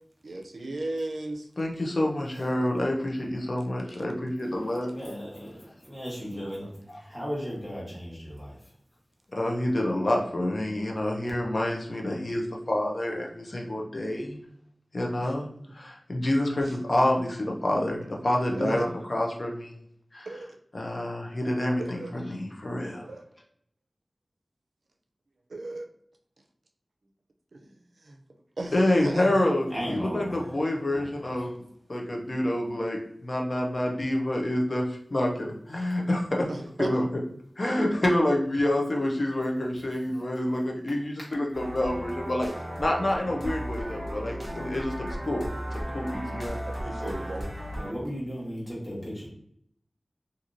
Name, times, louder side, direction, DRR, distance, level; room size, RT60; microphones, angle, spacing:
voice 1, 0.2-1.5 6.2-6.8 15.2-15.3 16.6-16.7 18.5-18.9 20.3-20.6 21.8-22.1 23.0-23.3 25.5-25.9 27.5-27.7 28.0-28.2 28.6-29.3 36.5-36.9 46.0-46.4 46.7-47.5, right 2 dB, 90° right, 2 dB, 0.4 m, -36 dB
voice 2, 1.6-4.9 6.9-7.0 9.3-14.4 14.9-19.8 20.1-20.3 20.7-23.1 28.7-31.5 31.9-34.8 35.1-36.5 36.8-37.1 37.6-42.5 42.8-46.6, left 1 dB, 55° left, 0 dB, 0.7 m, -28 dB
voice 3, 4.9-5.6 5.8-6.6 7.0-8.5 29.7-30.5 30.9-31.1 47.0-47.3 47.7-49.3, equal, 15° left, -7 dB, 1.4 m, -35 dB
sound 1, 41.5-47.9, equal, 35° right, 0.8 m, -35 dB
2.9 x 2.6 x 2.6 m, 0.69 s
wide cardioid pair, 50°, 0 cm